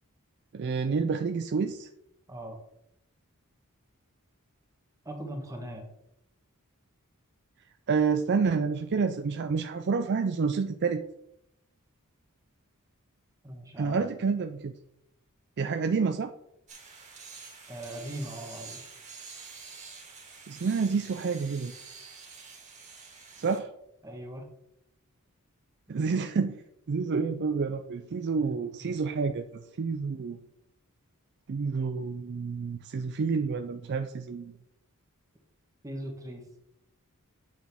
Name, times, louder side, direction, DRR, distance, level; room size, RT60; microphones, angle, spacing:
voice 1, 0.5-1.9 7.9-11.0 13.8-14.7 15.6-16.3 20.5-21.7 23.4-23.7 25.9-26.6 26.9-30.4 31.5-34.5, right 5 dB, 50° right, 8 dB, 0.4 m, -29 dB
voice 2, 5.0-5.9 13.4-14.2 17.7-18.8 24.0-24.5 28.3-29.0 35.8-36.4, right 1 dB, 15° right, 2 dB, 1.2 m, -40 dB
sound 1, 16.7-23.6, right 5 dB, 35° right, 2.1 m, -47 dB
8.2 x 6.3 x 3.5 m, 0.80 s
head